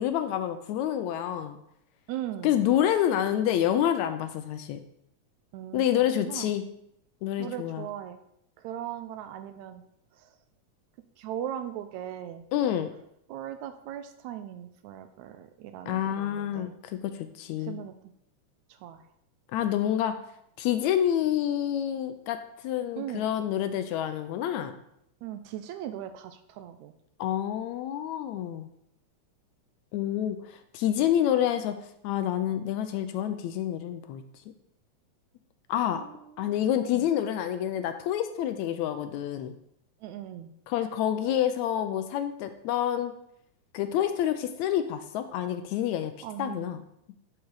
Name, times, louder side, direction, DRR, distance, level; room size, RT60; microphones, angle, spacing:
voice 1, 0.0-1.6 2.4-4.8 5.7-6.6 7.2-7.9 12.5-12.9 15.9-17.8 19.5-20.2 20.6-22.4 22.6-24.7 27.2-28.7 29.9-31.8 32.0-34.2 35.7-36.0 36.4-39.5 40.7-43.1 43.7-46.1 46.4-46.8, left 10 dB, 80° left, 9 dB, 1.8 m, -28 dB
voice 2, 2.1-2.5 5.5-6.5 7.4-8.2 8.6-9.8 11.2-12.4 13.3-16.7 17.6-17.9 18.8-19.0 23.0-23.3 25.2-26.9 35.9-36.5 36.9-37.1 40.0-40.5 46.2-46.7, right 11 dB, 80° right, 9 dB, 1.9 m, -38 dB
10.5 x 4.9 x 4.8 m, 0.74 s
omnidirectional pair, 3.5 m